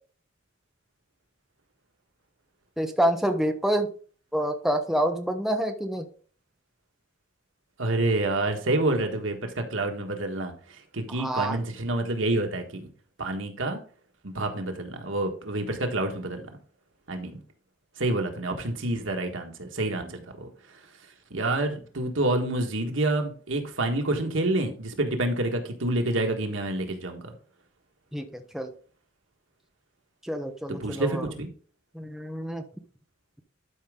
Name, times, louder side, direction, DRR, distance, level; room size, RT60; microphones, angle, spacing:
voice 1, 2.8-3.9 4.3-6.1 11.1-11.6 28.1-28.7 30.2-31.3 31.9-32.6, right 1 dB, ahead, 5 dB, 0.8 m, -27 dB
voice 2, 7.8-12.8 13.2-13.8 14.2-16.5 17.1-17.4 18.0-20.5 21.3-27.2 30.8-31.5, right 2 dB, 85° right, 4 dB, 1.5 m, -28 dB
11.5 x 5.1 x 3.7 m, 0.41 s
head